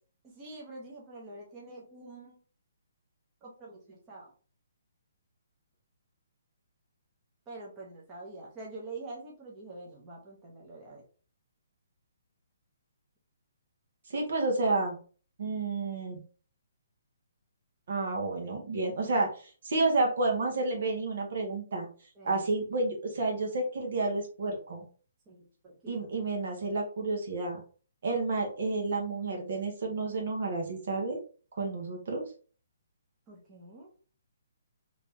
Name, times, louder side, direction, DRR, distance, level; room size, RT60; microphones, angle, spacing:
voice 1, 0.3-2.4 3.4-4.3 7.5-11.0 22.1-22.4 25.3-26.1 28.1-28.2 33.3-33.9, right 2 dB, 20° right, -3 dB, 1.0 m, -46 dB
voice 2, 14.1-15.0 15.4-16.2 17.9-21.9 22.2-24.8 25.9-27.6 28.0-31.2 31.6-32.2, right 3 dB, 60° right, 1 dB, 1.3 m, -30 dB
3.4 x 3.1 x 3.0 m, 0.39 s
hypercardioid pair, 155°, 0 cm